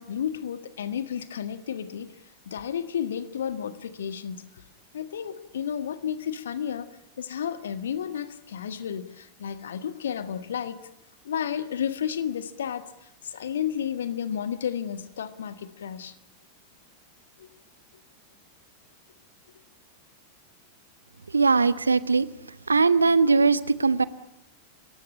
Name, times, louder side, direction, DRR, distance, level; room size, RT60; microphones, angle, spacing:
voice 1, 0.0-4.5 4.9-6.9 7.2-10.8 11.2-16.1 17.4-17.5, left 8 dB, 65° left, 1.6 m, -32 dB
voice 2, 21.3-22.3 22.7-24.0, right 4 dB, 75° right, 1.0 m, -20 dB
29.5 x 16.0 x 9.8 m
figure-of-eight pair, 90°, 0 cm